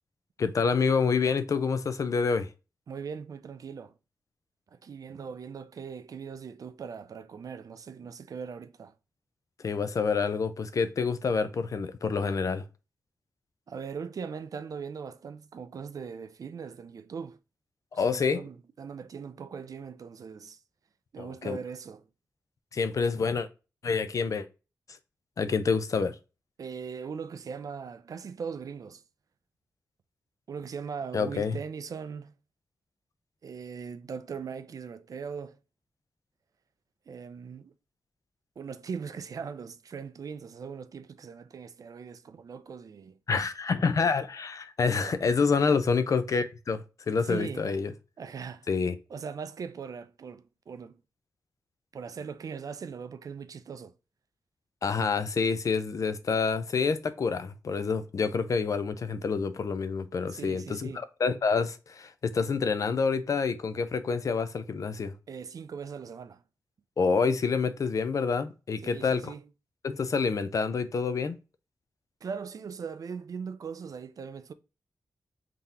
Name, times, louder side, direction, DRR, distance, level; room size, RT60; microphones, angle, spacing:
voice 1, 0.4-2.5 9.6-12.7 17.9-18.4 21.2-21.6 22.7-23.5 23.8-24.5 25.4-26.2 31.1-31.6 43.3-47.9 48.7-49.0 54.8-65.1 67.0-69.3 69.8-71.4, left 5 dB, 50° left, 0.5 m, -27 dB
voice 2, 2.9-3.9 4.8-8.9 13.7-17.4 17.9-20.6 21.1-22.0 26.6-29.0 30.5-32.3 33.4-35.6 37.1-37.7 38.6-43.2 45.0-45.2 47.2-47.6 48.2-48.7 49.1-51.0 51.9-53.9 60.3-61.0 65.3-66.4 68.8-69.4 72.2-74.5, right 6 dB, 60° right, 0.4 m, -40 dB
3.8 x 2.8 x 3.5 m
wide cardioid pair, 140°, 7 cm